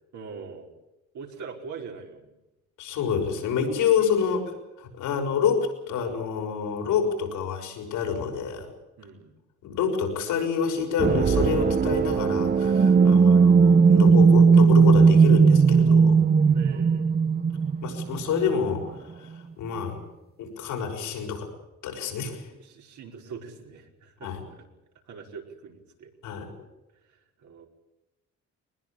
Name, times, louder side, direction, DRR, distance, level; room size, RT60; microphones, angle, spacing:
voice 1, 0.1-0.7 1.1-2.3 4.2-4.4 9.0-9.3 12.9-13.3 16.5-17.1 22.5-24.7 25.0-26.1 27.0-27.7, right 5 dB, 75° right, 2 dB, 5.1 m, -43 dB
voice 2, 2.8-4.5 4.8-8.7 9.6-16.2 17.8-20.0 20.4-21.5 21.8-22.5 24.2-24.4 26.2-26.5, left 7 dB, 90° left, 3 dB, 6.2 m, -28 dB
sound 1, 11.0-18.7, right 5 dB, 35° right, 0.9 m, -18 dB
21.5 x 21.0 x 8.7 m, 0.97 s
cardioid pair, 90°, 30 cm